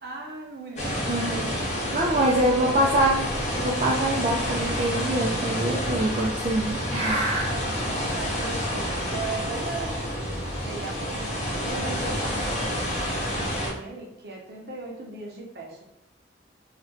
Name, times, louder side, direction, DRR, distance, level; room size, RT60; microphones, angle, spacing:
voice 1, 0.0-2.2 2.5-3.2 7.3-10.1 10.6-15.8, right 3 dB, 55° right, -1 dB, 0.7 m, -38 dB
sound 1, 0.8-13.7, equal, 40° left, 0.7 m, -29 dB
voice 2, 1.1-1.4 1.9-3.3 3.6-7.5, right 1 dB, 35° right, -3 dB, 0.3 m, -24 dB
2.4 x 2.2 x 3.7 m, 0.87 s
head